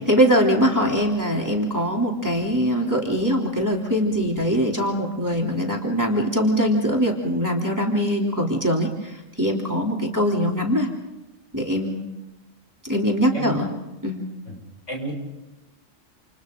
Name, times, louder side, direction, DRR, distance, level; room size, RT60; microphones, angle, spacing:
voice 1, 0.1-10.9 11.5-12.1 12.9-13.7 14.0-14.2, equal, 15° right, -1 dB, 3.4 m, -22 dB
voice 2, 13.3-13.7 14.5-14.6 14.9-15.1, equal, 65° left, -1 dB, 7.5 m, -31 dB
29.5 x 28.5 x 3.9 m, 1.0 s
omnidirectional pair, 1.3 m